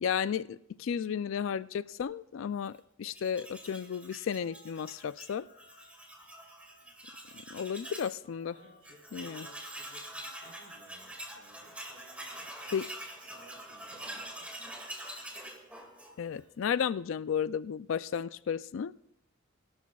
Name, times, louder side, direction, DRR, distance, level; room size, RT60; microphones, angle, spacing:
voice 1, 0.0-5.5 7.5-8.6 9.1-9.5 12.7-12.8 16.2-18.9, left 7 dB, 65° left, 16 dB, 0.3 m, -33 dB
Tools, 3.0-8.2 8.5-8.6 8.8-16.4, right 1 dB, 5° right, 2.1 m, -45 dB
sound 1, 3.4-4.0 4.4-4.9 5.3-5.9 6.3-6.8 7.3-7.8 8.2-8.8 9.2-9.7 10.2-10.7, right 1 dB, 65° right, 3.3 m, -60 dB
voice 2, 8.5-14.5, right 1 dB, 85° right, 0 dB, 4.2 m, -59 dB
22.0 x 12.0 x 2.3 m, 0.78 s
head